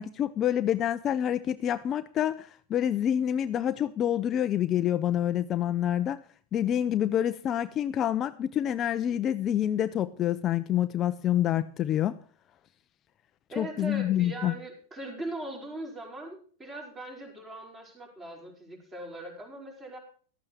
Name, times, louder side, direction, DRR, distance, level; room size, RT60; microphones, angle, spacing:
voice 1, 0.0-6.2 6.5-12.2 13.6-14.5, left 10 dB, 30° left, 0.5 m, -27 dB
voice 2, 13.5-20.0, right 1 dB, 20° right, 4.9 m, -40 dB
13.0 x 8.8 x 6.1 m
hypercardioid pair, 130°, 0 cm